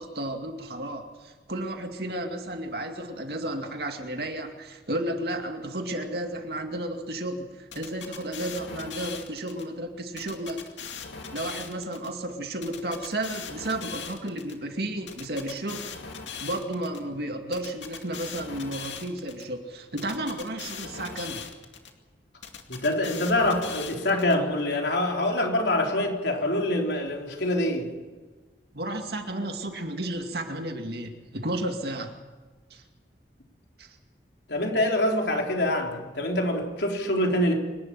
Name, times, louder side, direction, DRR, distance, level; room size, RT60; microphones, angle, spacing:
voice 1, 0.0-10.6 11.3-15.9 16.4-21.5 28.7-32.2 32.7-32.8 33.8-33.9, right 1 dB, 60° right, 4 dB, 2.3 m, -33 dB
sound 1, 7.7-9.6 10.2-12.1 12.6-14.5 15.1-17.0 17.5-19.4 20.0-21.9 22.4-24.3, left 6 dB, 90° left, 2.4 m, -39 dB
voice 2, 22.7-27.9 34.5-37.5, left 1 dB, 70° left, 1 dB, 3.9 m, -25 dB
27.0 x 12.0 x 9.1 m, 1.3 s
head